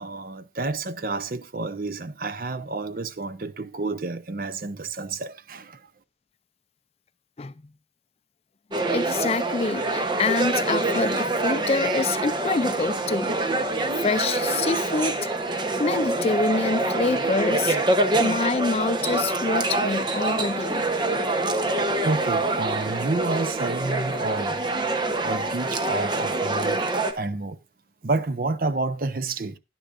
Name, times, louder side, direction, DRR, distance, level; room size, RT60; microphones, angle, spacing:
voice 1, 0.0-5.7 18.3-18.4 22.0-24.6 25.2-26.8 27.2-27.6 28.0-29.5, right 3 dB, 50° right, 0.7 m, -29 dB
sound 1, 8.7-27.1, right 2 dB, 25° right, 0.9 m, -25 dB
voice 2, 8.9-13.4 14.0-15.3 15.8-17.8 18.2-20.8, left 4 dB, 35° left, 0.4 m, -26 dB
10.5 x 10.0 x 2.5 m
head